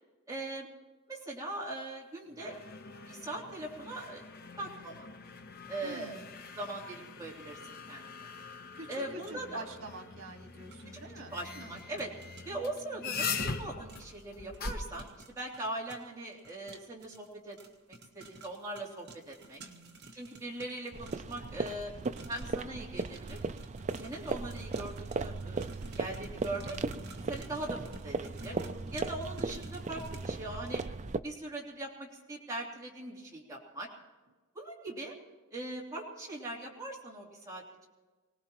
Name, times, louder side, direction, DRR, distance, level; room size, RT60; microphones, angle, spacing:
voice 1, 0.3-0.7 1.1-2.5 3.1-4.3 4.6-5.1 5.7-6.2 6.6-8.0 8.9-9.6 11.3-12.1 12.4-17.6 17.9-19.6 20.1-21.9 22.3-23.4 24.0-26.8 27.3-28.5 28.9-30.8 31.2-33.9 34.5-35.1 35.5-37.6, right 2 dB, 15° right, -4 dB, 3.1 m, -40 dB
sound 1, 2.3-15.1, left 4 dB, 50° left, 1.0 m, -42 dB
voice 2, 5.8-6.3 8.5-11.9 19.6-20.0 28.4-29.0, right 2 dB, 85° right, 5 dB, 1.7 m, -47 dB
sound 2, 10.7-10.8 11.8-12.5 13.4-13.5 13.9-14.2 14.5-22.6 23.0-30.3, right 2 dB, 55° right, 1.6 m, -52 dB
sound 3, 20.9-31.2, right 3 dB, 35° right, 0.5 m, -37 dB
25.0 x 18.5 x 3.0 m, 1.3 s
head